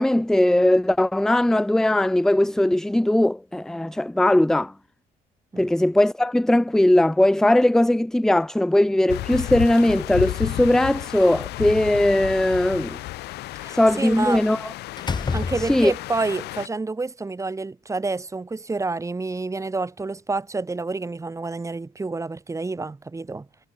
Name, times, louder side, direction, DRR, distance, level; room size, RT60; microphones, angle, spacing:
voice 1, 0.0-4.7 5.6-13.0 13.7-14.6 15.6-15.9, left 1 dB, 5° left, 0.5 m, -19 dB
sound 1, 9.1-16.7, left 18 dB, 75° left, 0.8 m, -32 dB
Slam, 11.2-12.2 14.3-14.5 15.0-16.2, left 5 dB, 25° left, 1.8 m, -30 dB
voice 2, 13.6-14.4 15.3-23.5, right 3 dB, 20° right, 3.6 m, -28 dB
cardioid pair, 110°, 17 cm